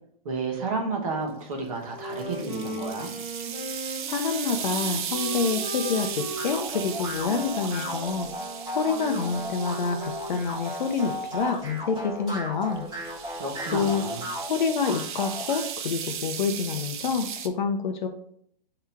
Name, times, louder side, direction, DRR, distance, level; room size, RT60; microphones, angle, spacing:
voice 1, 0.2-3.1 13.4-14.3, right 3 dB, 35° right, 0 dB, 1.0 m, -31 dB
Wind instrument woodwind instrument, 1.9-10.5, right 1 dB, 5° left, 0.8 m, -38 dB
sound 1, 2.1-11.6 12.8-17.5, right 8 dB, 55° right, 0.5 m, -36 dB
voice 2, 4.1-8.3 8.7-12.9 13.7-14.0 14.5-18.1, left 5 dB, 55° left, 5 dB, 0.5 m, -27 dB
sound 2, 6.4-15.7, left 1 dB, 10° right, 1.6 m, -35 dB
3.5 x 2.9 x 4.3 m, 0.68 s
hypercardioid pair, 175°, 29 cm